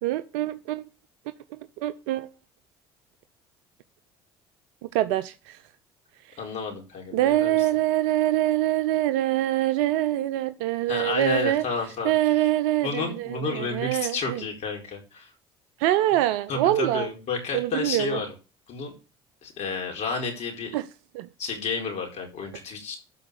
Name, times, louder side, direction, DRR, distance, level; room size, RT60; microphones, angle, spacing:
voice 1, 0.0-0.8 1.5-2.3 4.9-5.6 7.1-11.6 12.0-14.4 15.8-17.1 17.5-18.2 20.7-20.8 21.1-21.3, right 14 dB, 75° right, 0.6 m, -24 dB
voice 2, 6.4-7.7 10.9-12.1 12.8-15.3 16.5-18.3 18.7-18.9 19.4-20.7 21.4-23.0, left 4 dB, 60° left, 4.5 m, -31 dB
12.5 x 4.8 x 6.6 m
hypercardioid pair, 60°, 13 cm